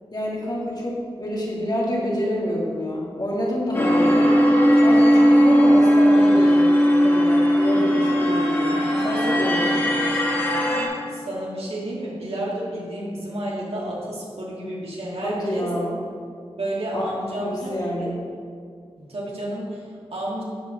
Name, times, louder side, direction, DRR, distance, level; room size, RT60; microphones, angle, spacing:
voice 1, 0.1-4.4 4.8-9.9 15.2-16.0 16.9-17.1 17.4-18.2, equal, 40° left, -4 dB, 2.2 m, -28 dB
sound 1, 3.7-10.9, equal, 20° left, 2.0 m, -17 dB
voice 2, 11.1-15.7 16.6-18.1 19.0-20.4, right 1 dB, 70° right, -5 dB, 2.4 m, -31 dB
11.0 x 4.6 x 5.1 m, 2.2 s
wide cardioid pair, 60°, 10 cm